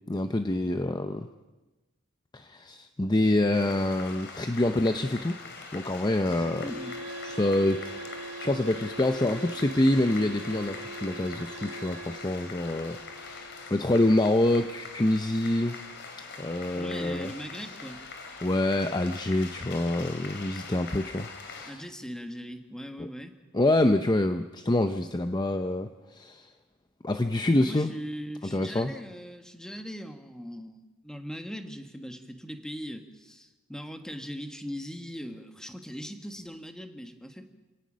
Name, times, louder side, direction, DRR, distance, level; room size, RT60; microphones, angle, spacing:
voice 1, 0.1-1.3 2.3-5.4 5.7-6.7 7.2-15.8 16.4-17.3 18.4-21.8 23.0-23.1 23.5-26.5 27.0-27.9 28.5-28.9, left 1 dB, 20° left, 8 dB, 0.6 m, -26 dB
sound 1, 3.5-21.7, left 4 dB, 50° left, 3.1 m, -43 dB
voice 2, 6.4-7.0 16.7-18.0 21.6-23.3 27.6-37.5, equal, 5° left, 6 dB, 1.5 m, -40 dB
sound 2, 6.4-16.0, right 2 dB, 75° right, 1.3 m, -43 dB
28.5 x 18.0 x 6.3 m, 1.1 s
head